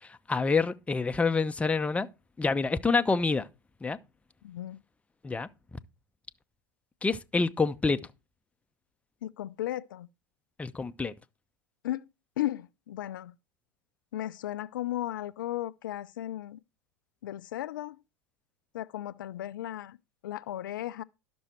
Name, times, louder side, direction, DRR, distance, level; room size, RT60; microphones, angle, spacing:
voice 1, 0.3-2.1 2.4-3.5 3.8-4.0 5.2-5.5 7.0-8.0 10.6-11.1, left 4 dB, 10° left, 0.7 m, -27 dB
voice 2, 4.4-4.8 9.2-10.1 11.8-12.1 12.4-13.3 14.1-16.6 17.2-18.0 18.7-20.0 20.2-21.0, left 14 dB, 75° left, 0.5 m, -35 dB
12.0 x 6.2 x 4.4 m
hypercardioid pair, 90°, 11 cm